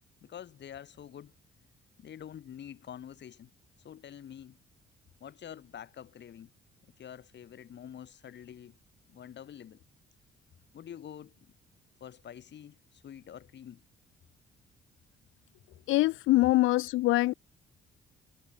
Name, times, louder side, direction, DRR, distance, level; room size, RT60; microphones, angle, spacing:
voice 1, 0.2-1.3 2.0-3.5 3.8-4.6 5.2-6.5 7.0-8.8 9.1-9.8 10.7-11.3 12.0-13.8, left 9 dB, 60° left, 4.9 m, -47 dB
voice 2, 15.9-17.3, left 18 dB, 85° left, 0.5 m, -24 dB
cardioid pair, 90°, 20 cm